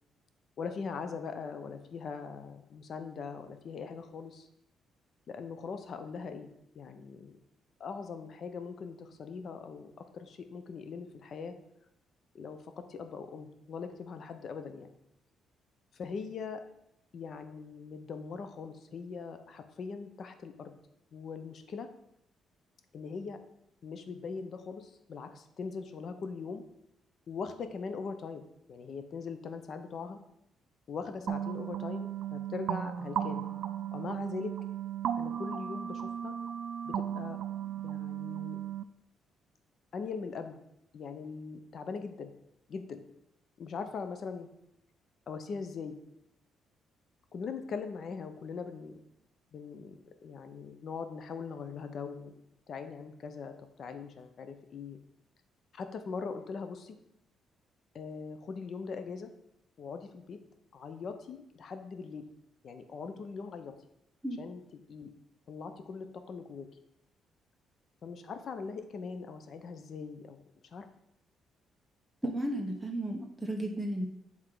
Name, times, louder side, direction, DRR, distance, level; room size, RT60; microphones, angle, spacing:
voice 1, 0.6-4.5 5.3-6.5 6.7-7.3 7.8-11.5 12.3-12.6 12.9-14.9 15.9-16.6 17.1-20.7 21.1-21.9 22.9-23.4 23.8-26.6 27.3-30.2 30.9-33.4 33.9-34.5 35.2-36.3 36.9-37.4 37.8-38.6 39.9-40.6 40.9-42.3 42.7-43.0 43.6-44.5 45.3-46.0 47.3-49.0 49.5-52.3 52.7-53.5 53.8-55.0 55.7-57.0 57.9-59.3 59.8-60.4 60.7-62.3 62.6-63.7 64.4-64.6 64.9-65.1 65.5-66.7 68.0-70.4 70.7-70.9, left 5 dB, 60° left, 8 dB, 0.8 m, -41 dB
sound 1, 31.3-38.8, right 9 dB, 70° right, 0.3 m, -36 dB
voice 2, 72.2-74.1, right 1 dB, 5° right, -1 dB, 1.0 m, -34 dB
7.9 x 3.6 x 4.8 m, 0.82 s
cardioid pair, 90°, 0 cm